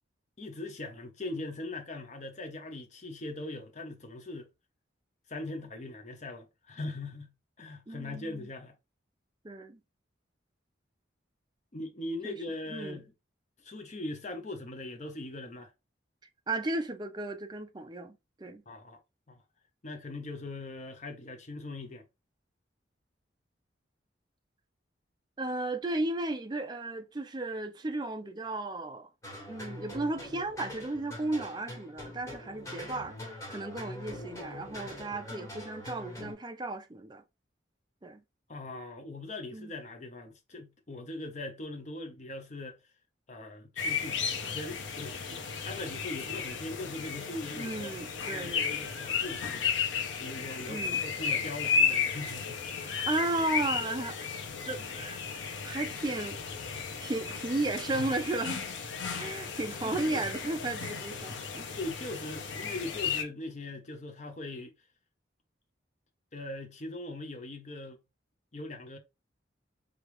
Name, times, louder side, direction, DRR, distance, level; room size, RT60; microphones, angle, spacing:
voice 1, 0.4-4.5 5.3-7.3 7.6-8.7 11.7-13.1 13.6-15.7 18.7-19.0 19.3-19.4 19.8-22.0 38.5-42.8 43.3-45.4 45.7-49.7 50.2-52.6 59.7-60.2 61.8-64.7 66.3-68.0 68.5-69.0, left 2 dB, 35° left, 0.7 m, -40 dB
voice 2, 7.9-8.5 9.4-9.8 12.2-12.4 12.7-13.0 16.5-18.6 25.4-29.1 29.5-37.2 38.0-38.2 39.5-39.7 47.6-48.9 50.7-51.0 52.8-54.3 54.6-55.2 55.6-56.6 57.0-58.6 59.2-61.7, right 2 dB, 20° right, 0.5 m, -34 dB
sound 1, 29.2-36.3, left 1 dB, 15° left, 1.4 m, -43 dB
sound 2, 43.8-63.2, left 6 dB, 75° left, 0.7 m, -34 dB
4.9 x 2.4 x 3.0 m
head